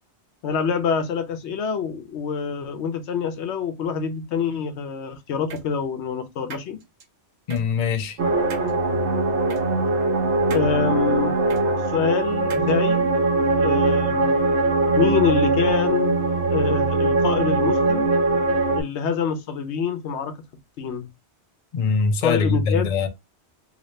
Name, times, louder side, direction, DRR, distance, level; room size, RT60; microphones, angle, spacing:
voice 1, 0.4-6.8 10.5-11.4 11.9-13.0 13.6-14.4 15.0-16.1 16.5-18.1 18.8-20.4 20.8-21.1 22.2-22.8, left 6 dB, 80° left, 1.0 m, -25 dB
sound 1, 5.5-5.6 6.5-7.0 7.5-7.6 8.5-8.7 9.5-9.6 10.5-10.7 11.5-11.6 12.5-12.7, right 6 dB, 55° right, 0.8 m, -36 dB
voice 2, 7.5-8.2 21.7-23.1, left 5 dB, 50° left, 0.5 m, -22 dB
sound 2, 8.2-18.8, right 3 dB, 85° right, 1.1 m, -21 dB
2.9 x 2.7 x 3.1 m
omnidirectional pair, 1.1 m